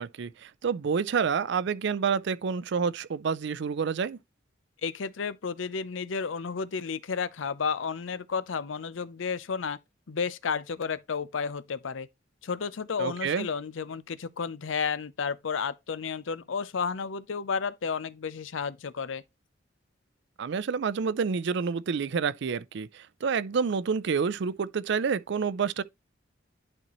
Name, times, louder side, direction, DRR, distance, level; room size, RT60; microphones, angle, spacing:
voice 1, 0.0-4.2 13.0-13.5 20.4-25.8, right 6 dB, 65° right, 0.4 m, -28 dB
voice 2, 4.8-9.8 10.1-12.1 12.4-19.2, left 5 dB, 90° left, 0.6 m, -32 dB
11.0 x 4.3 x 3.0 m
head